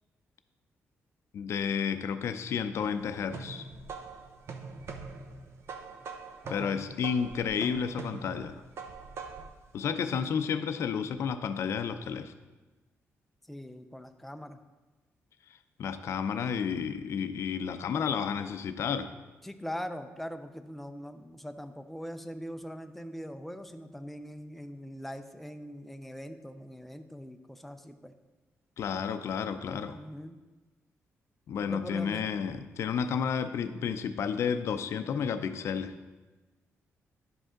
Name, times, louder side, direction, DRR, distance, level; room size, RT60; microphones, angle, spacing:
voice 1, 1.3-3.7 6.5-8.6 9.7-12.3 15.8-19.1 28.8-30.0 31.5-35.9, left 7 dB, 65° left, 10 dB, 0.5 m, -31 dB
sound 1, 2.7-9.6, right 4 dB, 60° right, 0.7 m, -43 dB
voice 2, 6.4-6.9 13.5-14.6 19.4-28.1 29.9-30.4 31.7-32.3, equal, 5° left, 8 dB, 0.4 m, -42 dB
11.0 x 5.2 x 3.7 m, 1.2 s
cardioid pair, 135°, 5 cm